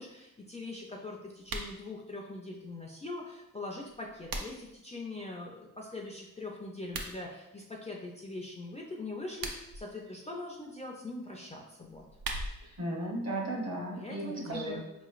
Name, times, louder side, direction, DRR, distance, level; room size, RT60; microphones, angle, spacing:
voice 1, 0.0-12.1 13.9-15.1, left 2 dB, 20° left, -1 dB, 0.3 m, -42 dB
sound 1, 1.4-1.8 3.8-4.8 6.8-7.1 9.2-9.8 11.8-12.8, right 2 dB, 80° right, 0.6 m, -39 dB
voice 2, 12.6-14.8, right 1 dB, 50° right, -1 dB, 0.9 m, -35 dB
4.9 x 3.0 x 2.4 m, 0.89 s
wide cardioid pair, 165°, 34 cm